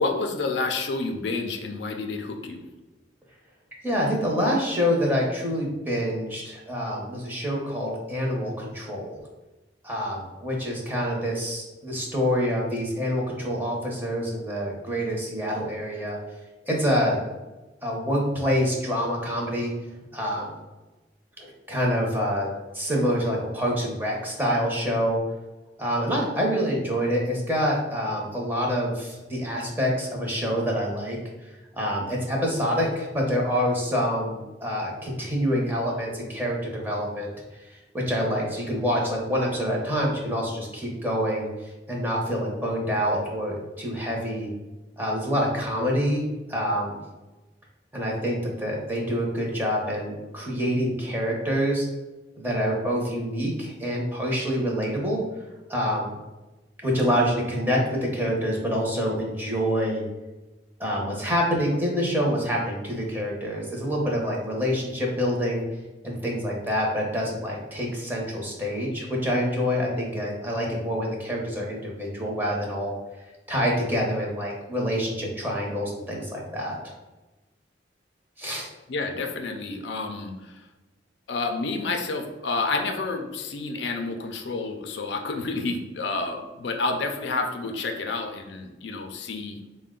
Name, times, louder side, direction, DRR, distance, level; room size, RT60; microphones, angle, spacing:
voice 1, 0.0-2.6 78.9-80.7 81.3-89.6, left 3 dB, 70° left, 4 dB, 0.4 m, -29 dB
voice 2, 3.8-9.2 9.8-16.2 16.7-17.2 17.8-19.7 20.1-20.6 21.4-22.5 22.7-25.2 25.8-31.2 31.7-37.3 37.9-41.5 41.9-44.5 45.0-46.2 46.5-47.0 47.9-51.9 52.4-55.2 55.7-56.1 56.8-60.0 60.8-65.6 66.0-72.9 73.5-76.8 78.4-78.7, equal, 10° right, -2 dB, 0.7 m, -26 dB
4.2 x 2.1 x 3.7 m, 1.1 s
head